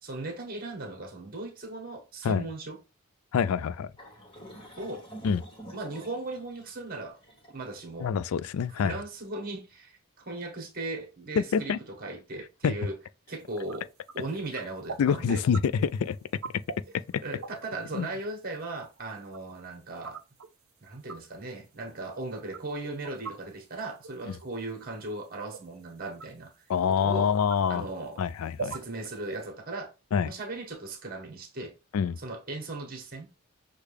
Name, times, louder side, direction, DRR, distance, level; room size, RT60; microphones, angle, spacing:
voice 1, 0.0-2.8 4.8-5.1 5.7-7.2 7.5-8.1 8.8-12.9 13.3-13.9 14.1-15.4 17.2-20.2 20.8-26.5 26.9-27.3 27.7-28.2 28.6-29.9 30.2-31.7 32.2-33.3, right 2 dB, 40° right, 1.2 m, -37 dB
voice 2, 3.3-3.9 5.2-5.4 8.0-8.9 11.4-11.8 12.6-12.7 15.0-16.2 17.9-18.1 26.7-27.9 28.2-28.7 30.1-30.3 31.9-32.2, left 6 dB, 75° left, 0.3 m, -26 dB
sound 1, 4.0-9.1, right 1 dB, 25° left, 1.2 m, -49 dB
sound 2, 13.5-13.8 14.1-14.3 14.6-14.7 14.9-15.0 15.3-17.7 18.0-18.1 18.8-19.4 20.0-20.5 21.1-21.2 21.9-22.0 22.2-23.5 24.0-24.5 24.8-25.0 25.5-25.6 26.2-26.3 27.1-27.2 27.5-27.6 28.6-29.0 29.3-29.4, right 5 dB, 65° right, 0.5 m, -39 dB
6.3 x 2.3 x 3.3 m
head